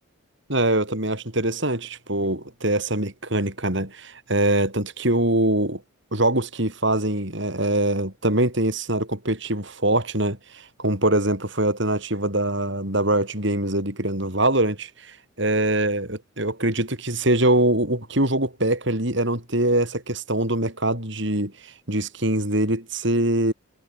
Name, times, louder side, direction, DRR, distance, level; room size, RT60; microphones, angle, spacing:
voice 1, 0.5-5.8 6.1-23.5, right 1 dB, 55° right, 5.2 m, -23 dB
head